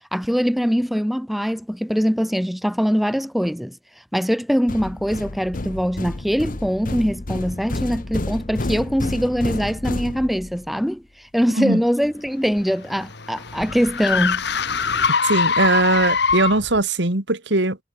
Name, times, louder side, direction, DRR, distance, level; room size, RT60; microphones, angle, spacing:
voice 1, 0.1-3.8 4.1-11.0 11.3-14.5, equal, ahead, 1.9 m, -22 dB
sound 1, 4.7-10.7, left 2 dB, 45° left, 1.1 m, -30 dB
sound 2, 12.3-16.8, left 5 dB, 65° left, 2.4 m, -23 dB
voice 2, 15.2-17.8, right 2 dB, 70° right, 2.9 m, -20 dB
head